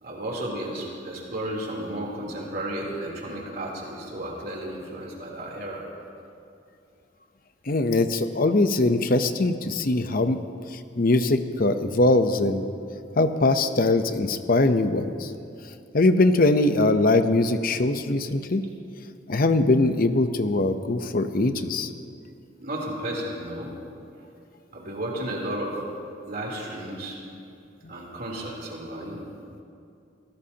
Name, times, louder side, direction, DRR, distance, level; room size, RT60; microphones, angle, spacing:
voice 1, 0.0-5.9 22.6-23.7 24.7-25.8 26.3-27.2 27.9-29.2, right 1 dB, 55° right, -3 dB, 3.4 m, -33 dB
voice 2, 7.7-10.4 10.7-12.7 13.2-15.3 15.9-18.6 19.3-21.9 27.8-27.9, left 2 dB, 50° left, 9 dB, 0.8 m, -22 dB
25.0 x 17.5 x 2.9 m, 2.6 s
head